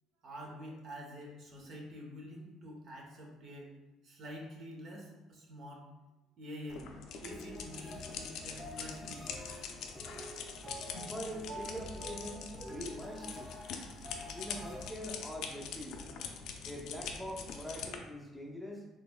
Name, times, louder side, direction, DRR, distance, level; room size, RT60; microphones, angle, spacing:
voice 1, 0.2-3.7 4.0-5.9 6.4-6.9 7.2-9.3, equal, 55° right, -1 dB, 0.9 m, -47 dB
sound 1, 6.7-18.0, left 6 dB, 70° left, 0.4 m, -44 dB
sound 2, 7.3-14.9, left 1 dB, 20° right, 1.3 m, -49 dB
Piano, 10.1-13.9 14.2-14.3, right 6 dB, 75° right, 0.3 m, -51 dB
voice 2, 11.1-13.5 14.3-16.0 16.6-18.9, equal, ahead, -2 dB, 0.6 m, -43 dB
4.0 x 3.0 x 2.2 m, 1.0 s
cardioid pair, 95°, 0 cm